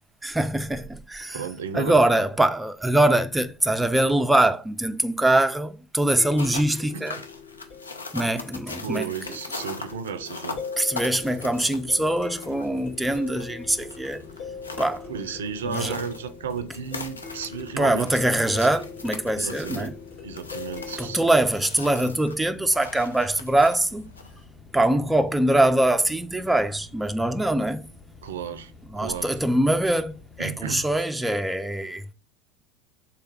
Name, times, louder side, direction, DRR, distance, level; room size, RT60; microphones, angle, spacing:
voice 1, 0.2-1.4 1.7-7.2 8.1-9.1 10.8-14.2 14.8-15.0 15.7-16.0 17.8-19.9 21.0-24.0 24.7-27.9 28.9-32.1, right 1 dB, 5° right, 0.4 m, -23 dB
voice 2, 1.3-2.0 6.9-7.3 8.8-10.6 15.1-18.1 18.5-18.7 19.3-20.0 20.2-21.2 28.2-28.7 29.0-29.4 30.4-30.8, right 7 dB, 70° right, 0.4 m, -33 dB
sound 1, 6.2-24.4, left 3 dB, 85° left, 0.5 m, -41 dB
sound 2, 6.2-21.3, left 5 dB, 50° left, 1.5 m, -41 dB
sound 3, 11.4-31.0, left 4 dB, 25° left, 0.7 m, -49 dB
3.6 x 3.4 x 4.3 m
figure-of-eight pair, 75°, 0 cm